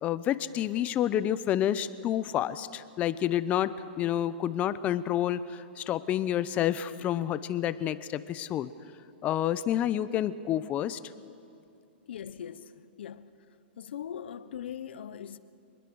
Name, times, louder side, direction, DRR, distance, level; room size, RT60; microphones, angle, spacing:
voice 1, 0.0-3.7 4.0-8.7 9.2-11.0, left 11 dB, 25° left, 0.7 m, -29 dB
voice 2, 12.1-13.3 13.8-15.4, left 9 dB, 75° left, 1.0 m, -40 dB
25.0 x 20.5 x 6.4 m
hypercardioid pair, 145°, 6 cm